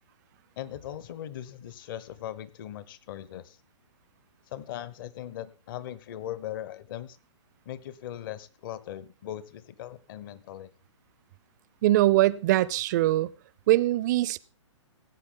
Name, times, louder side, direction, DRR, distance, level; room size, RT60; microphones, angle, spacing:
voice 1, 0.6-3.6 4.5-7.2 7.7-10.7, left 11 dB, 45° left, 1.0 m, -39 dB
voice 2, 11.8-13.3 13.7-14.4, right 16 dB, 35° right, 0.5 m, -22 dB
17.5 x 8.5 x 3.8 m
figure-of-eight pair, 125°, 16 cm